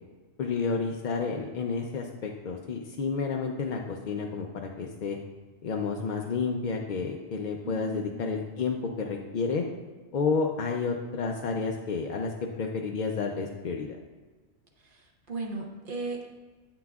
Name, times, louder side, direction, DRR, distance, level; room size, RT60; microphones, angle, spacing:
voice 1, 0.4-4.5 4.8-5.2 5.6-9.6 10.1-14.0, left 5 dB, 60° left, 1 dB, 0.5 m, -30 dB
voice 2, 7.6-8.1 15.3-16.3, right 3 dB, 50° right, 1 dB, 0.9 m, -35 dB
8.5 x 5.9 x 2.3 m, 1.3 s
omnidirectional pair, 1.2 m